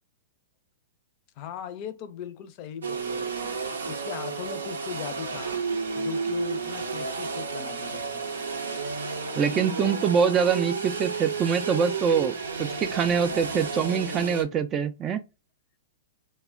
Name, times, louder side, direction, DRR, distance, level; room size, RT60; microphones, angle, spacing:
voice 1, 1.4-3.5 3.8-5.6 6.0-8.3, left 9 dB, 45° left, 0.5 m, -39 dB
sound 1, 2.8-14.4, right 5 dB, 80° right, 0.6 m, -32 dB
voice 2, 9.3-15.2, right 6 dB, 30° right, 0.3 m, -24 dB
2.2 x 2.1 x 3.6 m
hypercardioid pair, 120°, 0 cm